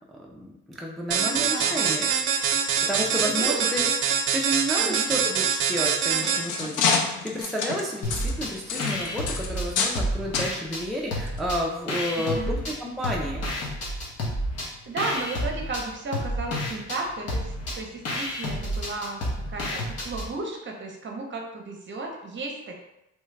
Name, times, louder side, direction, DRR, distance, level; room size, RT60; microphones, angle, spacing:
voice 1, 0.3-2.1 2.9-3.9 4.3-12.5 12.8-13.4, equal, ahead, -2 dB, 0.4 m, -31 dB
sound 1, 1.1-6.7, right 7 dB, 85° right, 0.4 m, -24 dB
voice 2, 1.2-2.0 3.2-3.7 4.8-5.1 12.2-12.6 14.9-19.2 19.5-22.8, right 3 dB, 40° right, 1 dB, 0.7 m, -34 dB
sound 2, 5.8-10.1 10.3-10.5 11.3-11.4 11.9-12.0, left 5 dB, 85° left, 0.5 m, -28 dB
sound 3, 8.0-8.5 8.8-10.8 11.1-12.7 13.0-20.3, left 1 dB, 55° left, 1.0 m, -30 dB
3.2 x 2.3 x 3.2 m, 0.87 s
cardioid pair, 90°, 30 cm